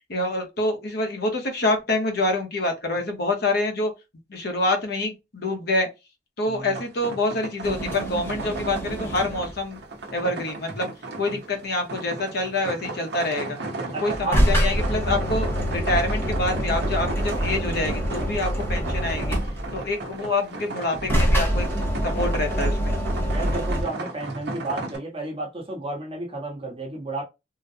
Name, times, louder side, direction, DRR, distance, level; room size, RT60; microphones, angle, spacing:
voice 1, 0.1-3.9 4.3-5.9 6.4-9.8 10.1-10.9 11.2-13.6 14.0-19.4 19.7-21.7 22.0-23.0, left 2 dB, 60° left, 0.8 m, -26 dB
voice 2, 6.5-6.8 11.3-11.4 13.9-14.7 18.7-18.9 23.2-27.2, right 2 dB, 30° right, 1.2 m, -32 dB
sound 1, 6.7-25.0, right 2 dB, 60° right, 0.9 m, -35 dB
sound 2, 7.6-9.6 14.1-19.9 20.9-23.8, equal, 15° left, 1.1 m, -25 dB
3.8 x 2.2 x 2.8 m
head